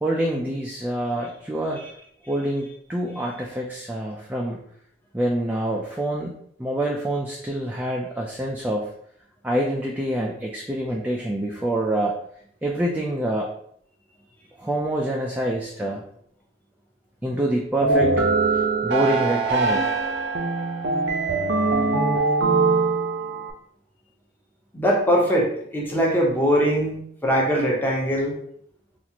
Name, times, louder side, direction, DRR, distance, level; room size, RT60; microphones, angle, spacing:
voice 1, 0.0-1.8 2.3-4.6 5.1-8.9 9.4-12.1 12.6-13.5 14.6-16.0 17.2-18.1 18.5-19.8, right 1 dB, 10° right, -2 dB, 0.3 m, -26 dB
sound 1, 17.8-23.5, right 3 dB, 75° right, 0.6 m, -22 dB
voice 2, 24.7-28.3, equal, 10° left, -3 dB, 0.8 m, -22 dB
4.1 x 2.5 x 2.8 m, 0.67 s
head